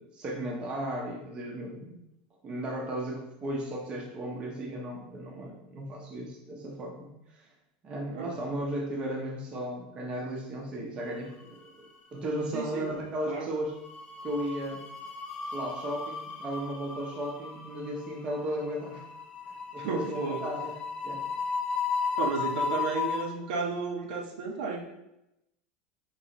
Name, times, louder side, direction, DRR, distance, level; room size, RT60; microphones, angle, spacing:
voice 1, 0.0-2.0 2.4-7.4 7.8-11.7 12.1-13.7 14.2-14.9 15.5-19.0 19.5-20.8 21.0-21.3, right 1 dB, 25° right, -1 dB, 0.7 m, -35 dB
sound 1, 11.2-12.0 12.2-12.5 13.7-23.2, left 5 dB, 20° left, 0.6 m, -35 dB
voice 2, 12.5-12.9 13.3-13.5 19.8-20.4 22.2-25.0, right 4 dB, 75° right, 2 dB, 0.8 m, -33 dB
5.1 x 3.0 x 2.9 m, 0.88 s
supercardioid pair, 165°, 4 cm